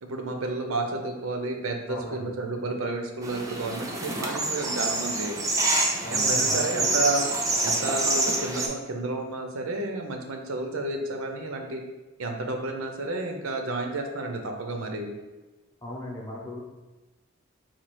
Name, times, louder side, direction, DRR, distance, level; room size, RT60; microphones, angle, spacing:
voice 1, 0.0-5.4 6.1-7.2 7.6-11.8 12.2-15.2, right 2 dB, 80° right, 3 dB, 0.6 m, -31 dB
voice 2, 1.9-2.3 6.0-6.9 15.8-16.6, left 1 dB, 15° left, -3 dB, 0.7 m, -37 dB
sound 1, 3.2-8.7, right 2 dB, 15° right, 0.4 m, -26 dB
4.3 x 2.4 x 4.5 m, 1.2 s
head